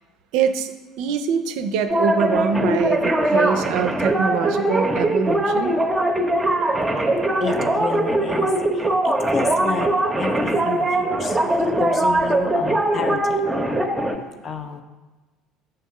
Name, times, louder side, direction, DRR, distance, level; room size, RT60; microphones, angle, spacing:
voice 1, 0.3-0.7 1.0-5.8, right 7 dB, 60° right, 10 dB, 0.4 m, -24 dB
sound 1, 1.9-14.2, right 1 dB, 10° right, 0.6 m, -21 dB
voice 2, 6.2-6.7 7.4-9.9 10.2-13.5 14.4-14.8, left 4 dB, 35° left, 8 dB, 0.5 m, -31 dB
6.6 x 3.6 x 5.3 m, 1.3 s
figure-of-eight pair, 60°, 0 cm